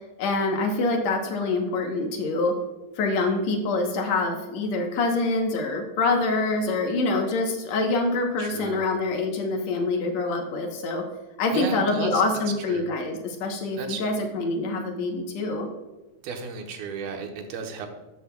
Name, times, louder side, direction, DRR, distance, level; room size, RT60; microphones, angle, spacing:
voice 1, 0.2-2.5 3.0-11.0 11.4-15.7, left 3 dB, 65° left, 3 dB, 1.8 m, -25 dB
voice 2, 8.4-9.0 11.5-12.2 12.7-12.9 13.8-14.0 16.2-17.9, right 5 dB, 85° right, 4 dB, 2.9 m, -34 dB
13.0 x 8.0 x 2.3 m, 1.1 s
omnidirectional pair, 4.3 m